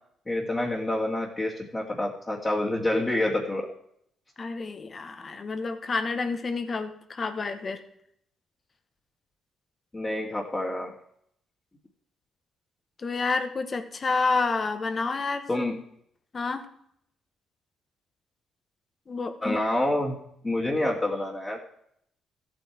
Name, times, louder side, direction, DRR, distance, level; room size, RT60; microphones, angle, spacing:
voice 1, 0.3-3.7 9.9-10.9 15.5-15.8 19.4-21.8, left 1 dB, 20° left, -4 dB, 2.3 m, -28 dB
voice 2, 4.4-7.8 13.0-15.6 16.3-16.7 19.1-19.6, left 4 dB, 35° left, 8 dB, 1.6 m, -29 dB
14.5 x 8.8 x 4.6 m, 0.71 s
cardioid pair, 90°, 0 cm